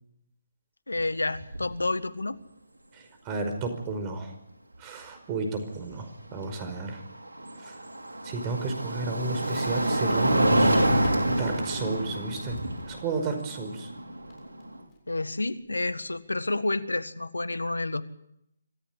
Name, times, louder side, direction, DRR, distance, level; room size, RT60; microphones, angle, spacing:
voice 1, 0.9-2.4 15.1-18.0, left 2 dB, 85° left, 14 dB, 1.6 m, -29 dB
sound 1, 0.9-1.0 1.3-1.8 3.6-3.7 6.7-14.8, right 1 dB, 85° right, 5.4 m, -27 dB
voice 2, 2.9-4.3 4.8-7.0 7.6-7.7 8.2-10.8 11.3-12.6 12.9-13.9, right 3 dB, 25° right, 6 dB, 5.2 m, -32 dB
Crackle, 9.4-16.2, left 5 dB, 25° left, 7.0 m, -50 dB
26.5 x 14.0 x 9.9 m, 0.78 s
figure-of-eight pair, 145°, 0 cm